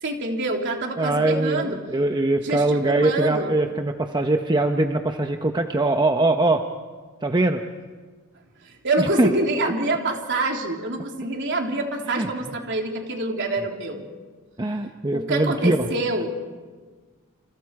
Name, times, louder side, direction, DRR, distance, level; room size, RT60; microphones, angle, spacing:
voice 1, 0.0-1.8 2.4-3.5 8.6-14.1 15.1-16.4, right 2 dB, 55° right, 1 dB, 3.7 m, -26 dB
voice 2, 1.0-6.6 7.2-7.6 9.0-9.3 12.1-12.3 14.6-15.9, right 2 dB, 20° right, 5 dB, 0.9 m, -22 dB
29.5 x 29.0 x 4.9 m, 1.4 s
head